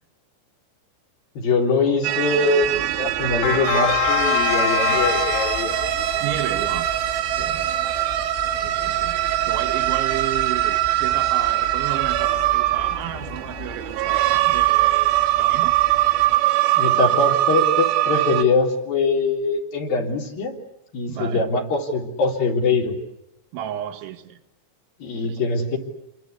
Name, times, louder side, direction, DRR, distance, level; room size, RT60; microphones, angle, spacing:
voice 1, 1.3-6.3 16.7-20.5 20.9-22.9 25.0-25.8, left 3 dB, 55° left, 5.0 m, -23 dB
sound 1, 2.0-18.4, right 14 dB, 70° right, 2.8 m, -22 dB
sound 2, 2.6-16.4, left 11 dB, 75° left, 3.3 m, -30 dB
voice 2, 6.2-6.9 7.4-7.8 8.6-15.8 21.1-21.4 23.5-24.4 25.2-25.4, right 11 dB, 85° right, 3.8 m, -33 dB
29.0 x 22.5 x 8.2 m
omnidirectional pair, 5.3 m